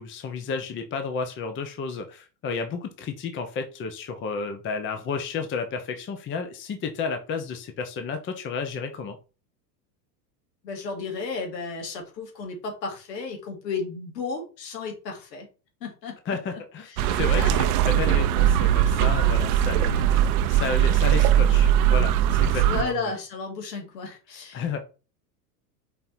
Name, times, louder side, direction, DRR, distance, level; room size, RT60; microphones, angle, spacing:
voice 1, 0.0-9.2 16.3-23.1 24.5-24.8, left 5 dB, 25° left, 6 dB, 0.9 m, -32 dB
voice 2, 10.6-15.5 15.8-17.6 19.0-19.5 22.5-24.8, left 4 dB, 75° left, 2 dB, 2.8 m, -34 dB
sound 1, 17.0-22.8, right 10 dB, 60° right, 0.8 m, -20 dB
5.5 x 3.9 x 4.4 m, 0.34 s
supercardioid pair, 125°, 50 cm